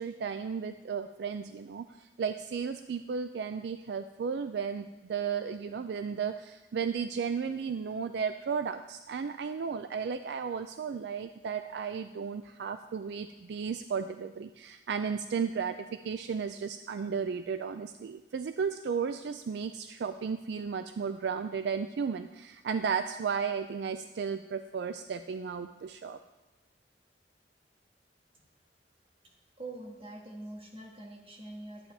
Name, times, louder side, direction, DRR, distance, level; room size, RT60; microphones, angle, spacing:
voice 1, 0.0-1.9 2.2-15.8 16.0-26.2, right 6 dB, 70° right, 9 dB, 0.4 m, -34 dB
voice 2, 29.2-31.9, right 2 dB, 30° right, 0 dB, 1.6 m, -45 dB
11.5 x 8.7 x 3.3 m, 1.1 s
head